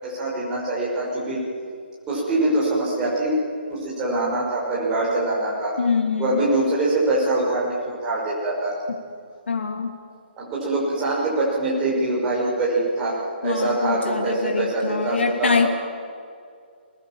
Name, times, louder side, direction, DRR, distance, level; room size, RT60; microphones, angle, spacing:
voice 1, 0.0-1.4 2.1-3.3 3.7-5.7 6.2-8.7 10.4-15.7, right 2 dB, 10° right, -6 dB, 5.7 m, -24 dB
voice 2, 5.8-6.4 9.5-9.9 13.4-15.7, left 5 dB, 85° left, 4 dB, 2.8 m, -24 dB
24.0 x 20.0 x 7.4 m, 2.3 s
hypercardioid pair, 170°, 6 cm